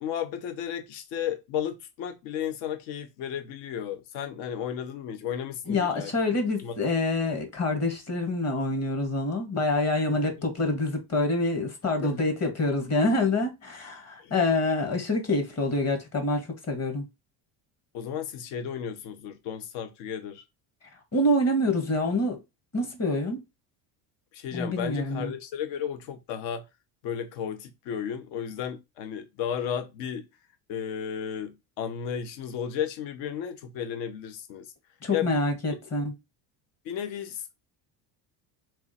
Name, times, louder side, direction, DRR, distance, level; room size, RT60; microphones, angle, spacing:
voice 1, 0.0-6.1 6.6-6.7 12.0-12.2 14.2-14.3 17.9-20.4 24.3-26.6 27.0-30.3 30.7-34.7 35.1-35.3 36.8-37.5, left 8 dB, 70° left, 0.8 m, -33 dB
voice 2, 5.7-17.0 21.1-22.4 22.7-23.4 24.5-25.3 35.0-36.1, left 2 dB, 35° left, 1.5 m, -26 dB
3.5 x 3.1 x 4.2 m
cardioid pair, 115°, 46 cm